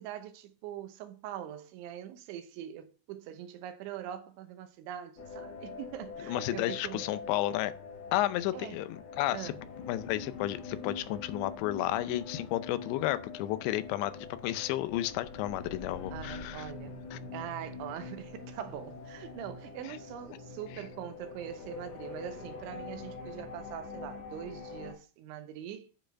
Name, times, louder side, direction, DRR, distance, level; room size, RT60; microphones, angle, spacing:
voice 1, 0.0-7.1 8.5-8.8 9.3-9.6 16.1-16.9 17.3-25.9, right 10 dB, 80° right, 3.3 m, -42 dB
sound 1, 5.2-24.9, left 4 dB, 55° left, 1.9 m, -44 dB
voice 2, 6.3-7.7 8.1-9.5 9.9-16.7 17.1-17.2 19.9-20.0, left 15 dB, 80° left, 2.7 m, -32 dB
10.0 x 4.5 x 5.7 m
omnidirectional pair, 5.5 m